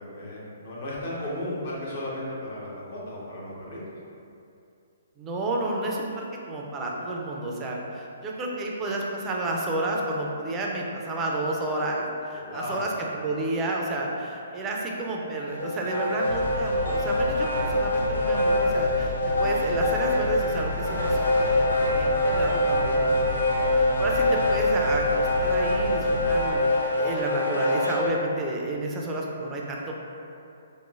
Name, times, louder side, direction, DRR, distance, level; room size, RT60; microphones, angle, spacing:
voice 1, 0.0-3.8 12.3-12.9, left 1 dB, 50° left, -6 dB, 0.8 m, -35 dB
voice 2, 5.2-12.9 13.2-21.2 21.5-26.6 26.9-29.9, right 2 dB, 20° right, -2 dB, 0.3 m, -31 dB
sound 1, 15.5-28.1, left 1 dB, 80° left, 0.4 m, -24 dB
sound 2, 16.2-26.5, left 2 dB, 65° left, 1.1 m, -34 dB
Explosion, 20.9-22.5 23.1-23.9, right 1 dB, 85° right, 0.6 m, -40 dB
2.9 x 2.1 x 2.4 m, 2.6 s
hypercardioid pair, 135°, 0 cm